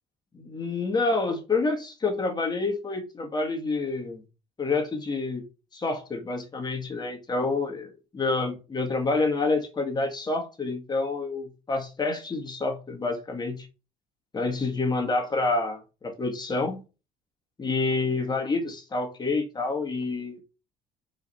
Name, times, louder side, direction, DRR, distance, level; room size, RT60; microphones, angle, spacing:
voice 1, 0.3-4.2 4.6-5.4 5.7-13.7 14.3-16.8 17.6-20.4, left 3 dB, 25° left, 1.8 m, -28 dB
5.0 x 4.8 x 5.6 m
cardioid pair, 110°, 17 cm